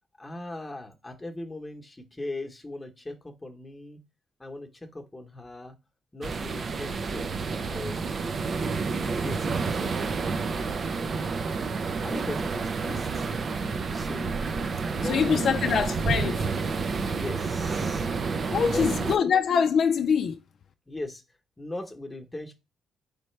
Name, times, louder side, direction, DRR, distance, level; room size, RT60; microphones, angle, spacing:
voice 1, 0.2-4.0 4.4-5.7 6.1-8.0 9.2-10.2 12.0-13.3 13.9-14.5 14.9-15.7 16.9-18.1 18.6-19.2 20.9-21.2 21.6-22.5, left 2 dB, 15° left, 1.1 m, -39 dB
sound 1, 6.2-19.2, right 4 dB, 45° right, 0.5 m, -29 dB
voice 2, 15.1-16.4 18.5-20.4, left 6 dB, 55° left, 0.5 m, -24 dB
4.1 x 3.3 x 3.2 m
cardioid pair, 90°, 0 cm